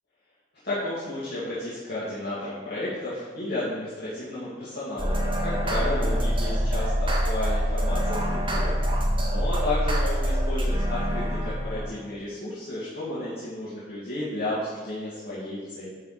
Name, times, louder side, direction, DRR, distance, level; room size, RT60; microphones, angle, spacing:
voice 1, 0.6-8.7 9.2-15.9, left 1 dB, 65° left, -11 dB, 2.1 m, -32 dB
sound 1, 5.0-12.0, equal, 30° right, 1.2 m, -25 dB
10.0 x 4.1 x 4.8 m, 1.5 s
head